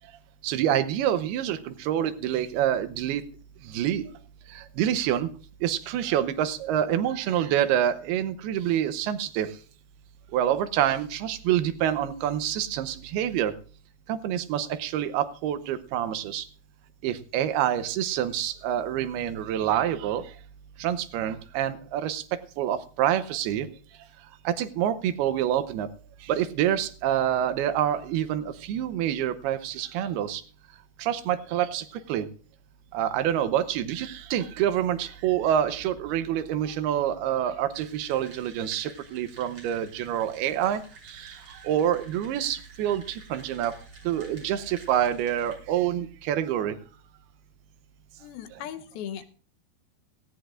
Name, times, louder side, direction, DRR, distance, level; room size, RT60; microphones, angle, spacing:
voice 1, 0.4-3.2 3.6-4.1 4.5-5.3 5.6-9.5 10.3-13.5 14.1-16.5 17.0-20.3 20.8-23.7 24.4-25.9 26.2-30.4 31.0-32.3 32.9-43.8 44.0-46.8, right 10 dB, 90° right, 11 dB, 2.9 m, -27 dB
sound 1, 37.7-45.5, right 2 dB, 40° right, 6.2 m, -51 dB
voice 2, 48.2-49.3, left 10 dB, 80° left, 8 dB, 2.8 m, -38 dB
18.5 x 16.5 x 2.5 m, 0.40 s
omnidirectional pair, 4.4 m